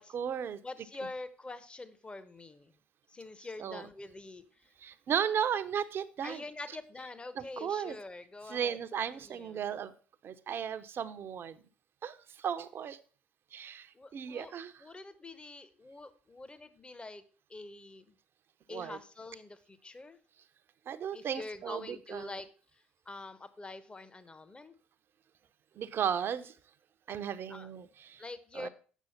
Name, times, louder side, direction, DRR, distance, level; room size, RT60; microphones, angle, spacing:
voice 1, 0.0-0.6 3.6-3.9 4.8-6.4 7.4-8.0 8.5-9.9 10.2-11.6 12.0-13.0 13.5-14.8 18.7-19.0 20.9-22.4 25.7-26.6 27.1-28.2 28.5-28.7, right 8 dB, 45° right, 12 dB, 0.7 m, -35 dB
voice 2, 0.6-2.7 3.1-4.7 6.2-8.8 9.1-9.6 13.9-14.5 14.8-17.2 17.5-18.2 18.7-20.2 21.1-24.7 27.5-27.7 28.2-28.7, left 2 dB, 20° left, 13 dB, 1.0 m, -45 dB
8.2 x 6.2 x 5.7 m, 0.39 s
hypercardioid pair, 55°, 5 cm